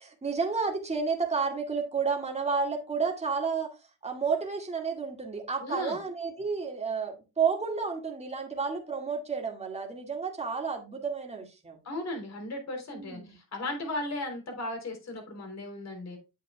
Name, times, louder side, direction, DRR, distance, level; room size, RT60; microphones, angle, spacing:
voice 1, 0.0-3.7 4.0-11.8 12.9-13.3, right 5 dB, 15° right, 2.1 m, -31 dB
voice 2, 5.6-6.0 11.8-16.2, left 1 dB, 40° left, 3.6 m, -36 dB
8.6 x 7.9 x 2.3 m
cardioid pair, 120°, 39 cm